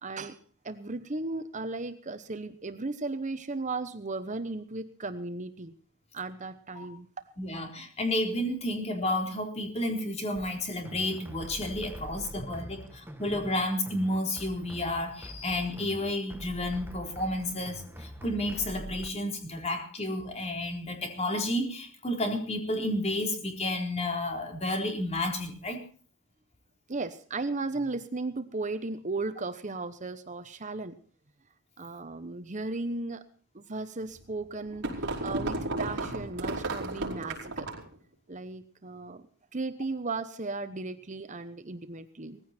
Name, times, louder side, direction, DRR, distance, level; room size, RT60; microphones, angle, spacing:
voice 1, 0.0-0.4 0.6-5.7 6.1-7.3 12.2-12.7 26.9-31.0 31.8-33.2 33.5-37.7 38.3-39.3 39.5-42.5, right 3 dB, 35° right, 11 dB, 1.0 m, -36 dB
voice 2, 7.4-25.8, left 1 dB, 30° left, 3 dB, 4.0 m, -31 dB
sound 1, 10.4-19.1, equal, 10° right, 1.5 m, -44 dB
sound 2, 34.2-37.9, right 2 dB, 55° right, 5.0 m, -33 dB
19.0 x 15.5 x 4.4 m, 0.43 s
head